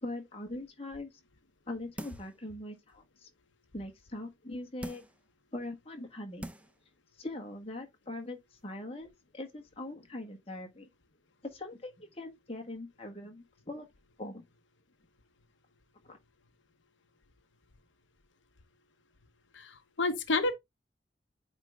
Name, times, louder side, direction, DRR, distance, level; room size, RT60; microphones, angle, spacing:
voice 1, 0.0-1.1 1.7-3.3 3.7-5.0 5.5-6.5 7.2-10.9 11.5-13.9 14.2-14.4 16.0-16.2, left 1 dB, 30° left, 1.6 m, -42 dB
sound 1, 2.0-2.4 2.9-3.0 4.8-5.2 5.9-6.0 6.4-6.8 7.2-7.3, right 1 dB, 5° right, 0.4 m, -43 dB
voice 2, 19.5-20.5, left 3 dB, 85° left, 0.9 m, -30 dB
8.8 x 3.7 x 3.5 m
head